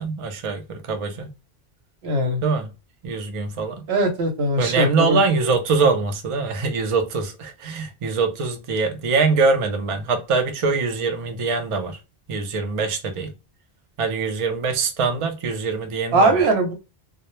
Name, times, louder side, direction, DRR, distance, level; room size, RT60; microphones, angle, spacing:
voice 1, 0.0-1.3 2.4-2.7 3.0-3.9 4.6-12.0 12.3-13.3 14.0-16.4, right 4 dB, 50° right, 0.4 m, -23 dB
voice 2, 2.0-2.4 3.9-5.2 16.1-16.7, right 1 dB, 75° right, 0.9 m, -20 dB
2.1 x 2.0 x 2.9 m
omnidirectional pair, 1.1 m